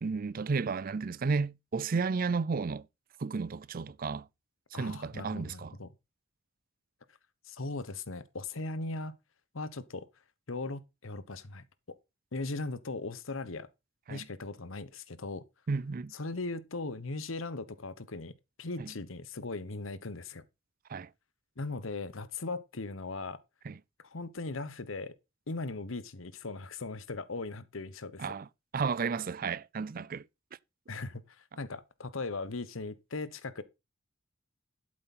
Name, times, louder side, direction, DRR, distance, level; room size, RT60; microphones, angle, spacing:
voice 1, 0.0-2.8 3.2-4.3 4.7-5.7 14.1-14.2 15.7-16.1 18.8-18.9 20.9-21.1 23.7-23.8 28.2-28.5 28.7-30.2, right 4 dB, 45° right, 0.4 m, -32 dB
voice 2, 4.7-5.9 7.4-9.1 9.5-10.1 10.5-12.0 12.3-13.7 14.1-15.4 16.1-20.4 21.6-23.4 24.0-25.1 25.5-28.2 30.9-33.6, left 3 dB, 80° left, 1.0 m, -38 dB
12.0 x 7.7 x 4.2 m
head